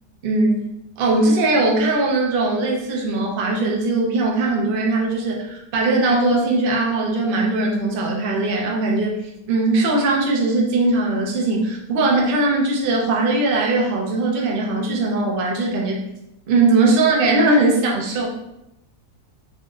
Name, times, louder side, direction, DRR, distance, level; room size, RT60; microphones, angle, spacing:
voice 1, 0.2-0.6 1.0-9.2 9.5-16.0 16.5-18.3, right 2 dB, 70° right, -1 dB, 0.5 m, -20 dB
3.5 x 2.5 x 2.3 m, 0.85 s
omnidirectional pair, 1.7 m